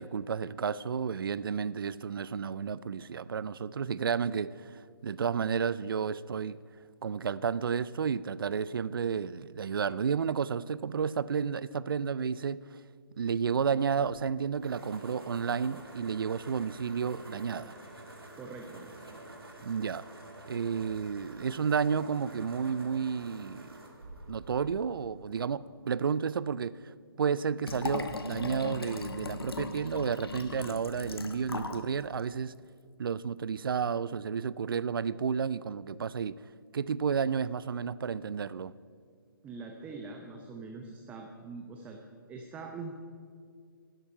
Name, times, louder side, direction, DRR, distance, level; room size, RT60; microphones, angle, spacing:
voice 1, 0.0-6.6 7.0-12.8 13.2-17.7 19.6-20.1 20.5-23.7 24.3-32.5 33.0-36.3 36.7-38.7, right 6 dB, 70° right, 0.4 m, -31 dB
sound 1, 14.4-25.7, right 1 dB, 90° right, 2.6 m, -49 dB
voice 2, 18.4-18.9 39.4-42.0 42.3-42.9, right 4 dB, 10° right, 0.7 m, -43 dB
Liquid, 27.6-31.9 32.2-32.3, left 3 dB, 80° left, 1.2 m, -38 dB
12.5 x 11.5 x 5.5 m
figure-of-eight pair, 145°, 12 cm